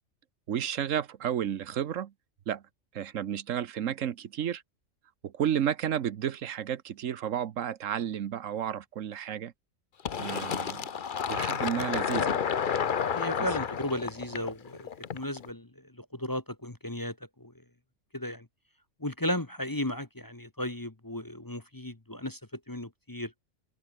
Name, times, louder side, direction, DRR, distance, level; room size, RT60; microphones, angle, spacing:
voice 1, 0.5-2.1 2.5-2.6 2.9-4.6 5.2-9.5 10.2-10.8 11.3-12.4 13.4-13.5, right 9 dB, 80° right, 1.3 m, -32 dB
Fill (with liquid), 10.1-15.5, left 7 dB, 45° left, 0.9 m, -31 dB
voice 2, 13.1-14.9 15.1-15.7 16.1-17.5 18.1-18.4 19.0-22.4 22.7-23.3, left 1 dB, 15° left, 1.2 m, -35 dB
open air
omnidirectional pair, 1.3 m